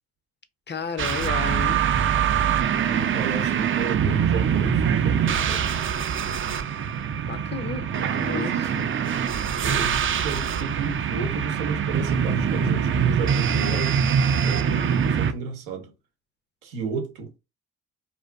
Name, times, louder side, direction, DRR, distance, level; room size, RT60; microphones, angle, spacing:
voice 1, 0.7-1.8 7.2-7.9 8.2-8.7, left 6 dB, 30° left, 0.5 m, -32 dB
sound 1, 1.0-15.3, right 8 dB, 35° right, 0.4 m, -23 dB
voice 2, 2.8-5.8 7.9-8.9 9.6-14.0 14.4-15.9 16.6-17.4, right 5 dB, 90° right, 0.7 m, -33 dB
2.5 x 2.4 x 2.2 m
hypercardioid pair, 45°, 36 cm